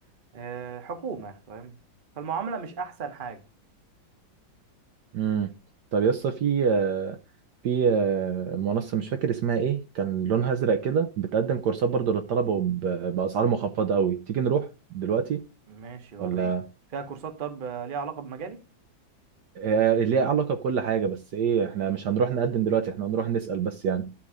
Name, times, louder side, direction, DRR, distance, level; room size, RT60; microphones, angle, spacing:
voice 1, 0.3-1.8 2.2-3.4 15.7-16.5 16.9-18.6, right 6 dB, 35° right, 1.0 m, -35 dB
voice 2, 5.1-5.5 5.9-7.2 7.6-14.7 14.9-15.4 16.2-16.7 19.6-24.1, right 6 dB, 65° right, 1.2 m, -25 dB
11.5 x 3.9 x 4.8 m
omnidirectional pair, 2.1 m